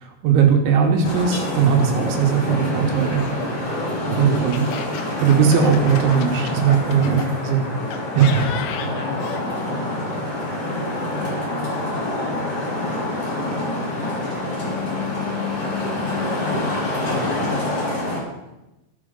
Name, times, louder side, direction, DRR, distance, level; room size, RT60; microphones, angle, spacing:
voice 1, 0.0-3.3 4.1-4.6 5.2-7.2 7.5-7.6 8.1-8.5, right 7 dB, 75° right, 2 dB, 3.3 m, -18 dB
Traffic noise roadway noise, 1.0-18.2, left 1 dB, 50° left, 1.1 m, -26 dB
Laughter, 2.9-7.3 7.9-9.5, left 8 dB, 90° left, 2.4 m, -35 dB
voice 2, 8.8-10.9 11.2-11.3 11.6-11.9 12.2-12.9 13.3-16.6 17.1-18.0, left 4 dB, 70° left, -1 dB, 2.8 m, -35 dB
15.0 x 5.9 x 3.7 m, 0.97 s
omnidirectional pair, 5.6 m